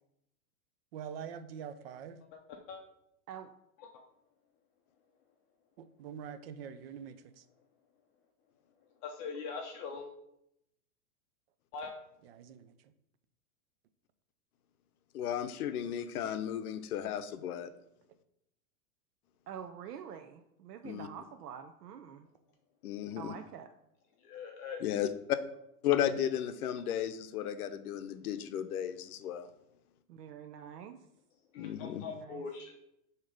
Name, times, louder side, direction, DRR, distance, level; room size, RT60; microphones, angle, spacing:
voice 1, 0.9-2.2 5.8-7.4 12.2-12.9, right 8 dB, 45° right, 11 dB, 0.4 m, -45 dB
voice 2, 9.0-10.1 11.7-11.9 24.2-24.8 31.5-32.8, left 5 dB, 30° left, 2 dB, 0.6 m, -41 dB
voice 3, 15.1-17.7 20.8-21.1 22.8-23.3 24.8-25.4 25.8-29.5 31.6-32.0, left 10 dB, 75° left, 11 dB, 0.7 m, -34 dB
voice 4, 19.5-22.3 23.1-23.7 30.1-31.0 32.0-32.4, right 8 dB, 85° right, 6 dB, 0.6 m, -46 dB
6.5 x 2.9 x 5.1 m, 0.81 s
hypercardioid pair, 135°, 45 cm